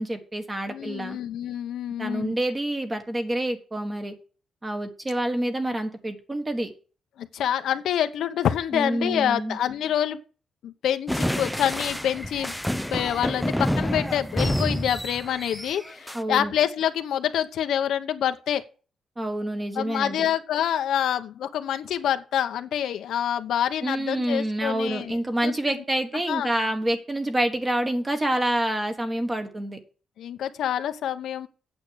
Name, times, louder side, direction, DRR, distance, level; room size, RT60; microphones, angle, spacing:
voice 1, 0.0-1.2 2.0-4.1 4.6-6.7 8.7-9.6 16.1-16.5 19.2-20.3 23.8-29.8, right 1 dB, 15° right, 1.4 m, -27 dB
voice 2, 0.7-2.3 7.2-10.2 10.6-18.6 19.8-25.8 26.3-26.5 30.2-31.5, left 10 dB, 85° left, 0.9 m, -27 dB
sound 1, 11.1-16.2, equal, ahead, 0.4 m, -28 dB
8.8 x 7.5 x 6.4 m
wide cardioid pair, 175°, 0 cm